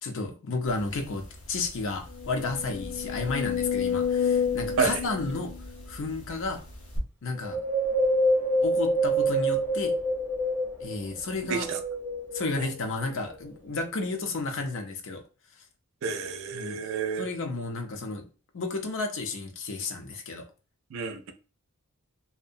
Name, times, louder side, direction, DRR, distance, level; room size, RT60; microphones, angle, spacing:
voice 1, 0.0-5.5 5.9-6.6 7.2-7.6 8.6-10.0 10.8-11.7 12.3-15.2 16.5-16.8 17.2-18.3 18.5-20.4, left 3 dB, 60° left, 0.5 m, -32 dB
sound 1, 0.9-1.0 1.4-1.5 2.1-6.3 6.9-7.0, left 7 dB, 80° left, 0.9 m, -30 dB
Wind, 7.4-11.0 11.5-12.8 13.3-13.4, right 1 dB, 10° right, 0.7 m, -26 dB
voice 2, 11.5-11.8 16.0-17.3 20.9-21.3, right 5 dB, 60° right, 0.4 m, -29 dB
2.7 x 2.0 x 2.5 m
head